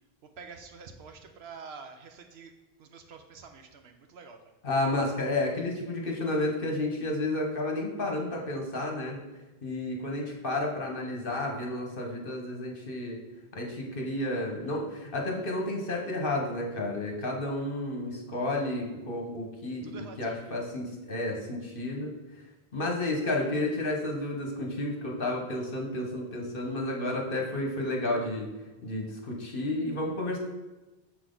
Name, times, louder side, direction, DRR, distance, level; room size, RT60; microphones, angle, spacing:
voice 1, 0.4-2.5 2.8-4.4 10.2-10.4 18.6-18.7 19.8-20.5, right 5 dB, 75° right, 6 dB, 1.0 m, -47 dB
voice 2, 4.6-9.2 9.6-13.2 13.5-22.1 22.7-28.5 28.8-30.4, left 1 dB, 55° left, 0 dB, 1.3 m, -31 dB
6.4 x 5.9 x 3.9 m, 1.1 s
omnidirectional pair, 1.1 m